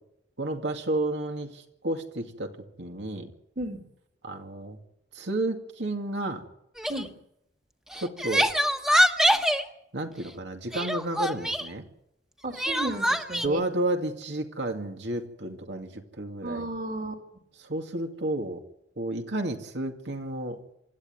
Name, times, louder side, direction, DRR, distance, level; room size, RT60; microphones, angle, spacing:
voice 1, 0.4-2.5 2.8-3.3 4.2-4.8 5.1-6.4 7.9-8.5 9.9-11.9 13.4-16.7 17.6-18.6 19.0-20.6, right 1 dB, 85° right, 4 dB, 2.4 m, -31 dB
Crying sobbing, 6.8-7.1 7.9-9.6 10.7-11.7 12.6-13.5, equal, 5° right, 1.2 m, -24 dB
voice 2, 12.4-13.6 16.4-17.2, right 1 dB, 50° right, 5 dB, 2.5 m, -33 dB
26.5 x 12.5 x 9.6 m, 0.80 s
head